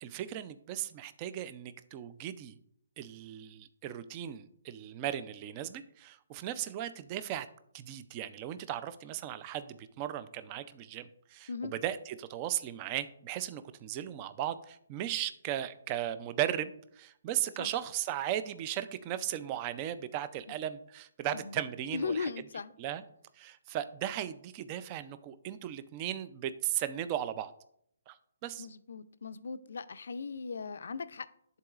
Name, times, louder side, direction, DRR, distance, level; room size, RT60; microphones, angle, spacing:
voice 1, 0.0-2.6 3.0-7.5 7.7-11.5 11.8-22.3 22.8-23.0 23.4-27.5 28.1-28.2 28.4-28.7, right 11 dB, 25° right, 13 dB, 0.3 m, -36 dB
voice 2, 21.9-22.7 28.6-31.3, left 5 dB, 70° left, 13 dB, 0.4 m, -38 dB
11.0 x 3.9 x 2.4 m, 0.69 s
hypercardioid pair, 160°, 0 cm